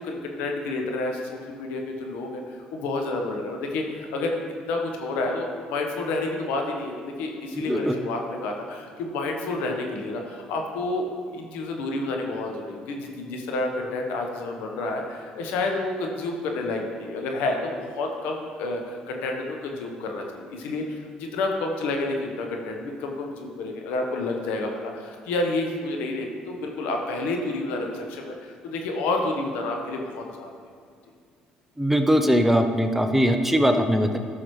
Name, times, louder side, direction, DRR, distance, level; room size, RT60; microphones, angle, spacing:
voice 1, 0.0-4.3 4.7-30.5, left 2 dB, 80° left, 2 dB, 1.2 m, -29 dB
voice 2, 7.6-8.0 31.8-34.2, equal, 5° right, 6 dB, 0.8 m, -21 dB
13.5 x 6.3 x 3.2 m, 2.2 s
supercardioid pair, 75°, 3 cm